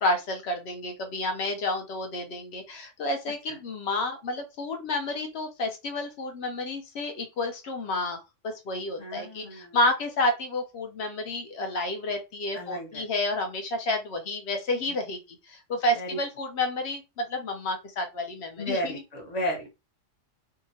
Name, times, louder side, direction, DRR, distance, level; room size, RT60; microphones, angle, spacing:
voice 1, 0.0-15.2 15.4-19.0, left 2 dB, 60° left, 5 dB, 0.8 m, -30 dB
voice 2, 9.0-9.8 12.5-13.0 15.9-16.2 18.6-19.7, equal, 35° left, -1 dB, 0.9 m, -33 dB
2.8 x 2.4 x 2.6 m, 0.25 s
omnidirectional pair, 1.4 m